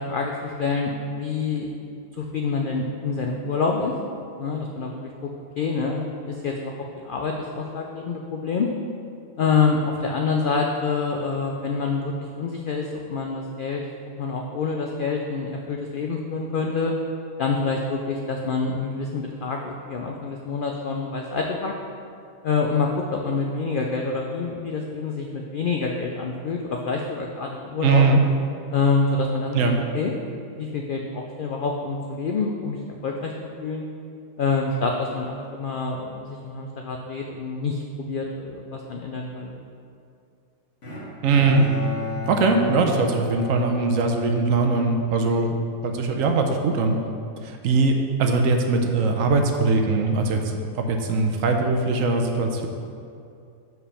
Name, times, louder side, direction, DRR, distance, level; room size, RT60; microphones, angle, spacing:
voice 1, 0.1-1.7 2.2-3.9 4.4-5.1 5.6-6.7 7.0-8.7 9.4-13.8 14.2-16.9 17.4-21.7 22.4-28.0 28.7-30.1 30.6-33.3 33.6-33.8 34.4-39.5, left 4 dB, 75° left, 1 dB, 0.4 m, -26 dB
voice 2, 27.8-28.2 29.5-29.8 41.2-41.7 42.3-47.0 47.4-52.7, right 3 dB, 75° right, 3 dB, 1.0 m, -21 dB
Bowed string instrument, 40.8-45.0, left 3 dB, 60° left, 1.6 m, -33 dB
5.1 x 4.7 x 5.6 m, 2.5 s
omnidirectional pair, 1.4 m